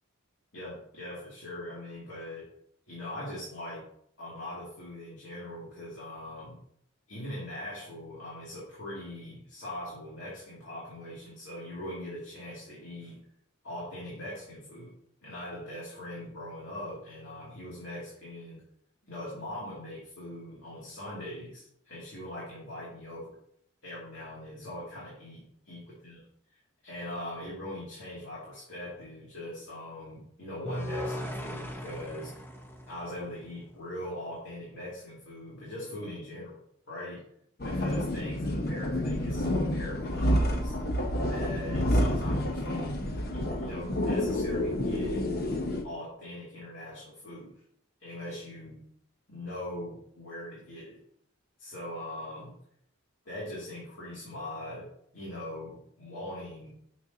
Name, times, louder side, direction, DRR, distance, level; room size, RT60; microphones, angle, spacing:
voice 1, 0.5-2.5 2.9-3.8 4.2-6.6 7.1-13.2 13.6-14.9 15.2-18.6 19.1-23.3 23.8-26.2 26.8-32.5 32.9-36.6 36.9-37.2 37.6-40.7 41.2-43.0 43.3-45.2 45.8-47.5 48.0-48.8 49.3-51.0 51.6-52.6 53.2-54.9 55.1-56.7, left 1 dB, 65° left, -6 dB, 2.6 m, -41 dB
sound 1, 30.6-33.8, equal, 10° left, 0.9 m, -38 dB
sound 2, 37.6-45.8, left 1 dB, 50° left, 0.9 m, -29 dB
9.9 x 6.6 x 2.9 m, 0.68 s
head